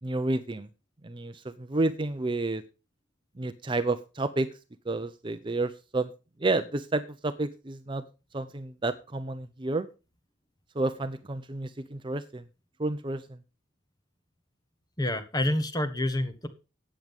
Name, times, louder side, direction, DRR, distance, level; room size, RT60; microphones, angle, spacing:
voice 1, 0.0-0.7 1.0-2.6 3.4-4.5 4.8-6.1 6.4-8.0 8.3-9.9 10.7-12.5 12.8-13.4, right 2 dB, 25° right, 10 dB, 0.6 m, -30 dB
voice 2, 15.0-16.5, left 1 dB, 20° left, 9 dB, 1.4 m, -28 dB
14.0 x 8.9 x 3.6 m, 0.31 s
head